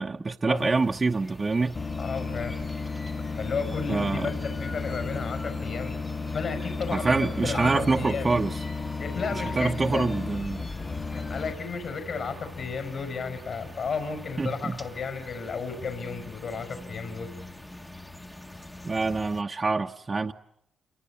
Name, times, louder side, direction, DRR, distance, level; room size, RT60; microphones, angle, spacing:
voice 1, 0.0-1.8 3.9-4.3 6.9-8.5 9.6-10.7 14.4-14.8 18.8-20.3, right 3 dB, 25° right, 1.0 m, -26 dB
sound 1, 0.5-19.4, left 1 dB, 10° left, 1.2 m, -44 dB
sound 2, 1.7-11.5, left 4 dB, 35° left, 1.7 m, -33 dB
voice 2, 2.0-2.6 3.3-6.0 6.3-8.4 9.0-10.1 11.1-17.3, left 5 dB, 55° left, 5.3 m, -33 dB
28.0 x 23.0 x 8.5 m
cardioid pair, 90°, 0 cm